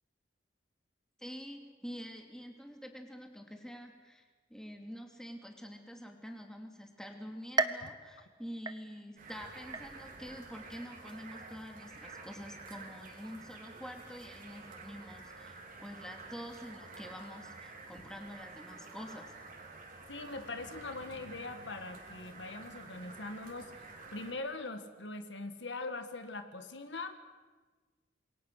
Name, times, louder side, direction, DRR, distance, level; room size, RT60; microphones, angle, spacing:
voice 1, 1.2-19.3, equal, 5° left, 3 dB, 2.8 m, -47 dB
sound 1, 7.6-9.3 9.7-10.3 10.8-10.9 11.9-12.0, right 3 dB, 20° right, 1.0 m, -36 dB
sound 2, 9.2-24.3, right 3 dB, 50° right, 3.7 m, -50 dB
voice 2, 20.1-27.1, left 3 dB, 70° left, 8 dB, 1.7 m, -42 dB
27.5 x 22.5 x 6.6 m, 1.3 s
head